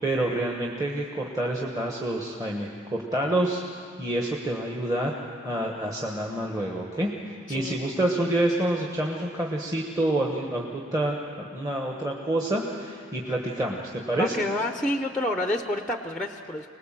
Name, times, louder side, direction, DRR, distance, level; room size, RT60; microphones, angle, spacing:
voice 1, 0.0-3.6 4.0-5.1 5.4-7.1 7.5-14.3, right 1 dB, 15° right, -1 dB, 1.3 m, -27 dB
voice 2, 7.5-7.8 14.2-16.7, left 1 dB, 5° left, 6 dB, 0.7 m, -28 dB
25.0 x 19.5 x 7.5 m, 2.2 s
head